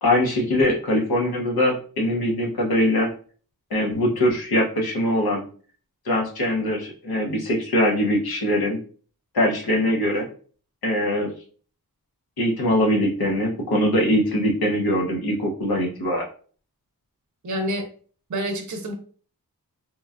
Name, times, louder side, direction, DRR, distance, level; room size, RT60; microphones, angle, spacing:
voice 1, 0.0-3.1 3.7-5.4 6.1-8.8 9.3-10.3 10.8-11.3 12.4-16.3, left 1 dB, 85° left, 0 dB, 0.8 m, -22 dB
voice 2, 17.4-17.9 18.3-18.9, equal, 55° right, 3 dB, 0.6 m, -27 dB
3.0 x 2.2 x 2.3 m, 0.43 s
wide cardioid pair, 95°, 36 cm